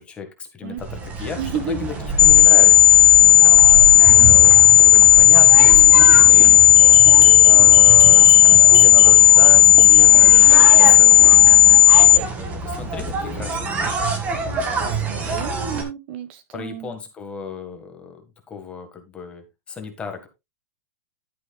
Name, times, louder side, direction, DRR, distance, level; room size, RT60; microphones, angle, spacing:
voice 1, 0.0-2.9 4.2-4.5 4.9-11.1 12.6-14.0 16.5-20.3, left 5 dB, 15° left, 1.7 m, -35 dB
sound 1, 0.8-15.8, right 3 dB, 20° right, 2.0 m, -26 dB
voice 2, 1.4-1.9 4.1-4.4 11.5-11.8 14.7-16.9, right 7 dB, 40° right, 1.4 m, -32 dB
sound 2, 2.2-12.2, left 11 dB, 85° left, 0.8 m, -10 dB
sound 3, 6.8-9.5 9.8-10.0 10.3-10.4 10.7-10.8 11.1-11.2, right 2 dB, 85° right, 4.0 m, -30 dB
11.5 x 9.4 x 2.4 m
supercardioid pair, 165°, 8 cm